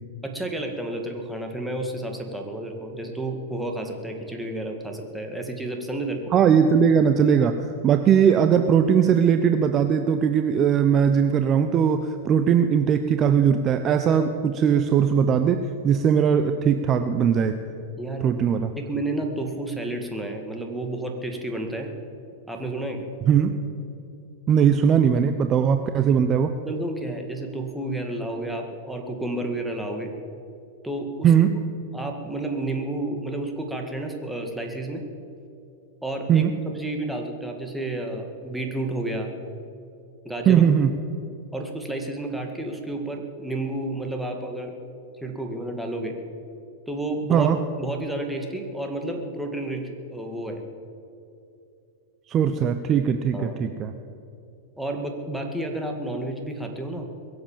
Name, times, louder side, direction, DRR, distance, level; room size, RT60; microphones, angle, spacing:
voice 1, 0.2-6.3 18.0-18.4 18.8-21.9 22.5-23.1 26.6-30.1 30.8-31.3 31.9-35.0 36.0-39.3 40.3-40.6 41.5-44.8 45.2-46.1 46.9-47.5 47.8-50.6 53.3-53.6 54.8-57.1, right 1 dB, 5° right, 2 dB, 2.1 m, -31 dB
voice 2, 6.3-7.6 7.8-17.6 18.2-18.7 23.3-23.6 24.5-26.5 31.2-31.6 36.3-36.5 40.5-40.9 47.3-47.6 52.3-53.9, right 8 dB, 30° right, 8 dB, 0.7 m, -19 dB
22.0 x 7.9 x 7.4 m, 2.6 s
hypercardioid pair, 130°, 0 cm